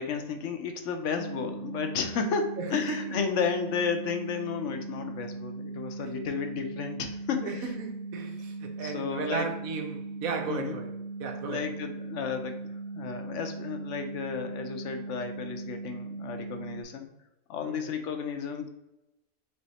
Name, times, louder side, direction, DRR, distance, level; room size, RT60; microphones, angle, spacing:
voice 1, 0.0-7.6 8.8-9.5 10.5-10.8 11.5-17.1 17.5-18.8, left 6 dB, 70° left, 6 dB, 0.9 m, -33 dB
sound 1, 1.1-16.8, right 3 dB, 35° left, 0.6 m, -39 dB
voice 2, 2.6-3.2 7.4-10.9 11.2-11.6 17.6-17.9, right 5 dB, 90° right, 4 dB, 1.2 m, -35 dB
3.5 x 3.4 x 4.0 m, 0.93 s
omnidirectional pair, 1.4 m